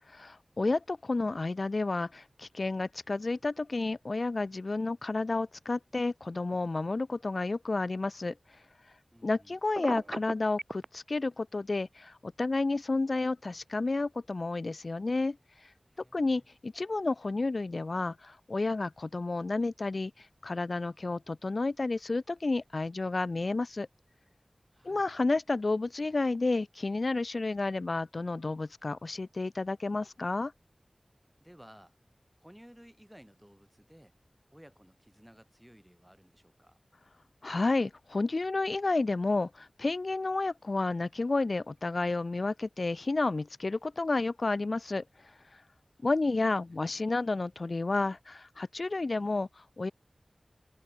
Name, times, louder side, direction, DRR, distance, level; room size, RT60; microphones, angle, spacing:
voice 1, 0.2-8.3 9.2-15.4 16.1-23.9 24.8-30.5 37.4-45.0 46.0-49.9, left 3 dB, 65° left, 0.5 m, -31 dB
voice 2, 9.1-9.6 15.9-16.5 24.7-25.3 31.4-32.0 32.4-34.2 34.5-36.8 46.0-46.4 46.7-47.1, equal, 5° right, 3.7 m, -57 dB
Telephone, 9.8-10.9, right 2 dB, 55° right, 0.5 m, -36 dB
wide cardioid pair, 65°, 0 cm